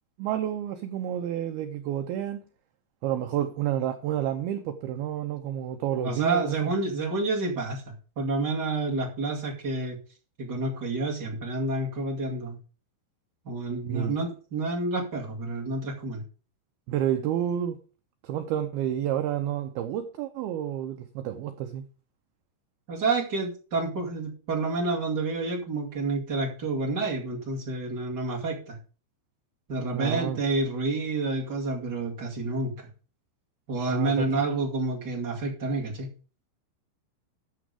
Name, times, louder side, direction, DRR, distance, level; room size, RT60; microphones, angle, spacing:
voice 1, 0.2-2.4 3.0-6.7 13.9-14.1 16.9-17.8 18.2-21.8 29.9-30.4 33.9-34.3, right 11 dB, 90° right, 2.2 m, -30 dB
voice 2, 6.0-10.0 10.4-12.6 13.4-16.2 22.9-28.8 29.7-32.9 33.7-36.1, right 3 dB, 35° right, 1.7 m, -29 dB
12.5 x 6.3 x 5.0 m
omnidirectional pair, 5.4 m